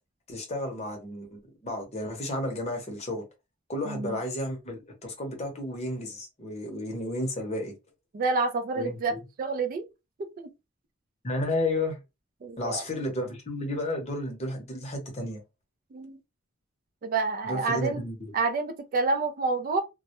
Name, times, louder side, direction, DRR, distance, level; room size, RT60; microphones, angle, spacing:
voice 1, 0.3-3.2 3.7-7.7 8.8-9.2 11.2-12.0 12.6-15.4 17.4-18.3, left 1 dB, 35° left, 0.7 m, -32 dB
voice 2, 3.8-4.2 8.1-9.1 9.4-9.8 10.2-10.3 12.4-12.8 15.9-16.2 17.0-18.0 18.3-19.8, right 3 dB, 45° right, 0.3 m, -28 dB
2.1 x 2.1 x 2.8 m
head